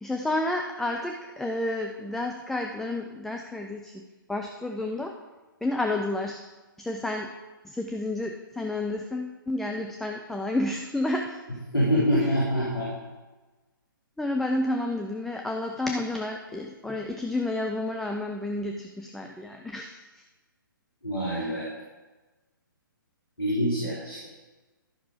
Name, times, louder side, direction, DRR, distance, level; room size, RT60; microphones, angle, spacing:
voice 1, 0.0-5.2 5.6-6.4 6.8-7.3 7.6-11.4 12.2-12.3 14.2-20.2 21.3-21.6, left 2 dB, ahead, 2 dB, 0.4 m, -31 dB
voice 2, 11.7-12.9 21.0-21.7 23.4-24.3, equal, 85° left, -8 dB, 3.0 m, -25 dB
11.5 x 5.8 x 5.0 m, 1.2 s
figure-of-eight pair, 130°, 12 cm